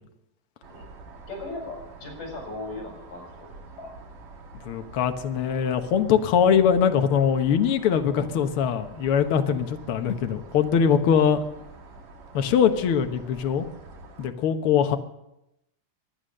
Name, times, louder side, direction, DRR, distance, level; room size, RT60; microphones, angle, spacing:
sound 1, 0.6-14.3, right 3 dB, 75° right, 3.6 m, -46 dB
voice 1, 1.3-3.5 3.8-3.9, left 2 dB, 85° left, 2 dB, 6.2 m, -37 dB
voice 2, 4.6-11.4 12.3-13.7 14.2-15.0, left 7 dB, 60° left, 6 dB, 1.5 m, -22 dB
22.5 x 9.8 x 6.5 m, 0.87 s
omnidirectional pair, 3.7 m